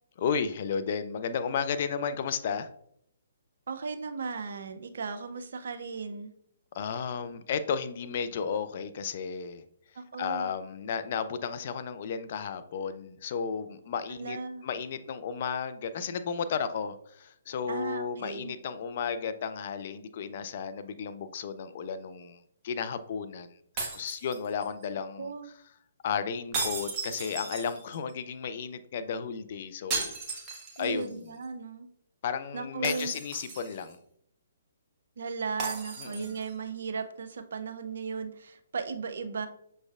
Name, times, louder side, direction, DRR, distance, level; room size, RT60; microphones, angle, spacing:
voice 1, 0.2-2.7 6.7-9.6 10.2-14.4 14.6-22.4 22.6-23.5 23.7-25.3 26.0-30.5 30.8-31.3 32.2-34.0 36.0-36.4, left 6 dB, 50° left, 11 dB, 0.4 m, -33 dB
voice 2, 3.7-6.3 10.0-10.5 14.1-14.6 17.7-18.5 25.2-25.5 30.8-31.9 32.5-33.2 35.2-39.5, right 5 dB, 65° right, 8 dB, 0.5 m, -36 dB
sound 1, 23.8-24.8 26.5-28.1 29.9-31.1 31.4-31.5 32.8-33.9 35.6-36.5, right 3 dB, 25° right, 1.2 m, -36 dB
6.1 x 3.2 x 2.4 m, 0.68 s
figure-of-eight pair, 130°, 0 cm